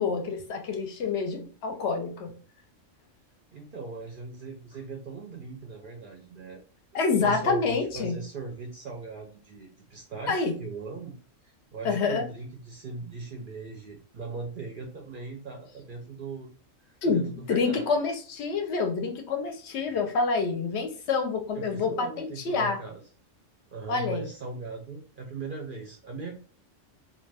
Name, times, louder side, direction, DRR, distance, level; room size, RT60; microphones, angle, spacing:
voice 1, 0.0-2.3 6.9-8.2 10.3-10.5 11.8-12.3 17.0-22.8 23.9-24.3, left 4 dB, 65° left, 5 dB, 0.8 m, -27 dB
voice 2, 3.5-6.6 7.2-11.1 11.4-16.5 16.8-17.9 21.5-23.0 23.7-26.3, right 3 dB, 55° right, 1 dB, 0.6 m, -39 dB
2.4 x 2.2 x 3.2 m, 0.40 s
omnidirectional pair, 1.3 m